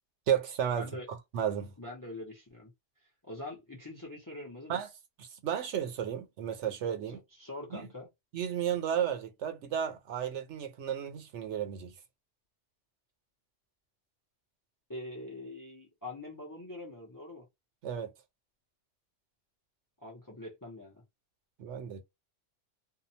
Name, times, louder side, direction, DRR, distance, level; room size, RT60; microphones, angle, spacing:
voice 1, 0.3-1.7 4.7-4.9 5.2-7.2 7.7-7.9 8.3-11.9 17.8-18.1 21.6-22.0, right 9 dB, 75° right, 1.0 m, -33 dB
voice 2, 0.8-1.1 1.8-2.7 3.2-4.8 7.4-8.1 14.9-17.5 20.0-21.0, left 2 dB, 25° left, 0.4 m, -44 dB
2.8 x 2.0 x 2.6 m
omnidirectional pair, 1.2 m